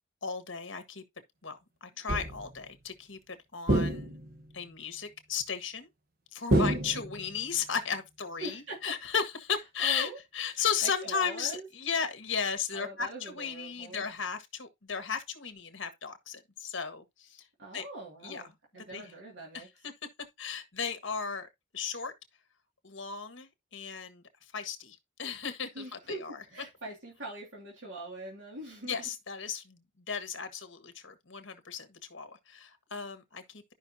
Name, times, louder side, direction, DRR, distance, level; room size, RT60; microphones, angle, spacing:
voice 1, 0.2-1.0 1.4-4.1 4.5-5.9 6.3-17.5 17.7-17.8 18.2-18.4 18.9-19.1 19.5-19.6 20.4-22.1 22.8-24.2 24.5-26.4 28.8-33.6, left 6 dB, 65° left, 1.6 m, -35 dB
sound 1, 2.1-2.6 3.7-4.5 6.5-7.4, right 1 dB, 45° right, 1.1 m, -28 dB
voice 2, 6.6-7.0 8.4-9.0 9.8-10.2 10.8-11.6 12.7-14.1 17.6-19.7 25.7-29.1, right 2 dB, 65° right, 2.4 m, -42 dB
12.0 x 5.7 x 2.8 m
head